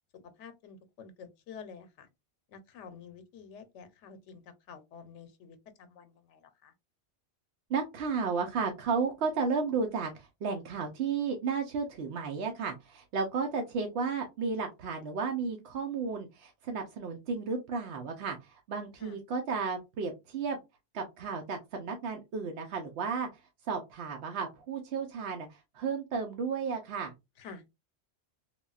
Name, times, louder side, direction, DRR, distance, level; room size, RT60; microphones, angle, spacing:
voice 1, 0.4-2.1 2.5-6.7 19.0-19.2 27.4-27.6, left 6 dB, 85° left, 0.9 m, -49 dB
voice 2, 7.7-20.6 20.9-27.1, right 5 dB, 70° right, 0.8 m, -33 dB
3.4 x 2.2 x 2.3 m
omnidirectional pair, 1.2 m